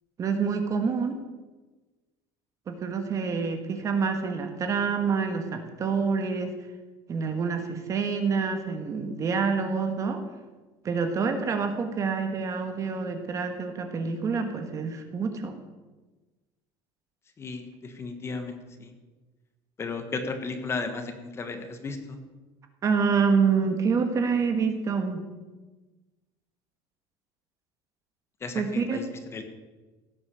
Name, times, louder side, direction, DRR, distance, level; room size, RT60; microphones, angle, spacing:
voice 1, 0.2-1.2 2.7-6.5 7.1-10.2 10.8-15.6 22.8-25.2 28.5-29.0, right 5 dB, 30° right, 6 dB, 1.5 m, -27 dB
voice 2, 17.4-18.9 19.8-22.2 28.4-29.0 29.3-29.4, left 4 dB, 25° left, 7 dB, 1.5 m, -34 dB
16.5 x 8.2 x 7.0 m, 1.2 s
cardioid pair, 150°, 11 cm